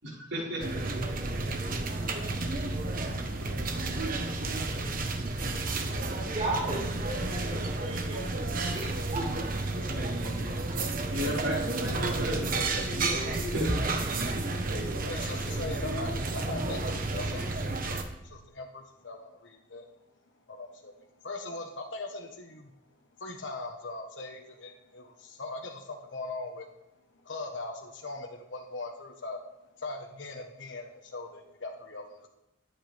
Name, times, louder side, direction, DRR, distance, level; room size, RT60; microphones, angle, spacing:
voice 1, 0.0-0.9 5.9-6.1 11.1-12.5 13.5-13.8, equal, 85° right, -6 dB, 5.0 m, -34 dB
sound 1, 0.6-18.0, right 2 dB, 50° right, 1.2 m, -31 dB
voice 2, 6.3-9.2 9.6-11.0, right 2 dB, 35° right, -4 dB, 4.6 m, -37 dB
voice 3, 15.0-19.9 20.5-22.7 23.2-26.7 27.2-29.4 29.8-32.3, left 2 dB, 75° left, 2 dB, 1.3 m, -40 dB
19.5 x 8.6 x 3.5 m, 0.88 s
head